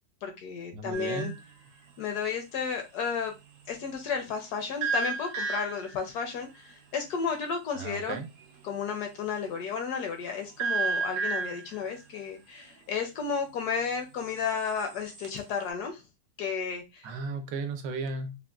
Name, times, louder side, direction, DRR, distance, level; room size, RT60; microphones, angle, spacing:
voice 1, 0.2-1.3 2.0-3.3 3.7-8.2 8.6-16.0 16.4-17.1, left 6 dB, 70° left, 1.0 m, -33 dB
voice 2, 0.7-1.4 7.7-8.3 17.0-18.4, right 4 dB, 85° right, 1.3 m, -35 dB
sound 1, 0.9-1.4 4.8-6.0 10.6-11.8 14.5-15.4, right 4 dB, 65° right, 0.8 m, -31 dB
3.5 x 2.2 x 2.2 m
omnidirectional pair, 1.9 m